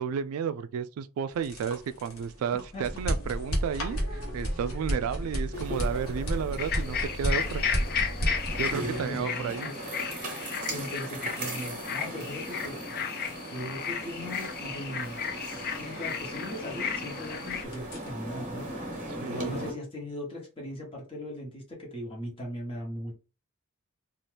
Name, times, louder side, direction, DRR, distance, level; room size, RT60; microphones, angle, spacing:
voice 1, 0.0-7.6 8.6-9.7 19.2-19.7, right 7 dB, 80° right, 0.3 m, -32 dB
sound 1, 1.3-17.1 17.4-18.1, equal, 70° left, 1.1 m, -33 dB
sound 2, 5.5-19.7, right 1 dB, 40° right, 1.0 m, -39 dB
sound 3, 6.6-17.6, left 7 dB, 45° left, 0.4 m, -34 dB
voice 2, 8.4-9.8 10.6-13.2 13.5-15.2 15.8-19.0 19.2-23.1, equal, 25° left, 1.1 m, -39 dB
2.7 x 2.4 x 3.3 m
head